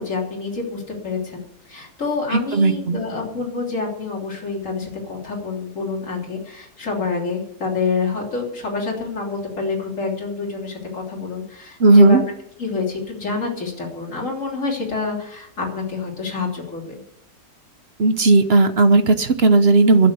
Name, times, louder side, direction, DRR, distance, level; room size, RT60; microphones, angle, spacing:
voice 1, 0.0-12.2 12.6-17.0, left 4 dB, 50° left, -1 dB, 3.5 m, -27 dB
voice 2, 2.3-3.0 11.8-12.2 18.0-20.1, right 3 dB, 45° right, 10 dB, 1.0 m, -14 dB
12.0 x 8.6 x 8.1 m, 0.77 s
omnidirectional pair, 1.7 m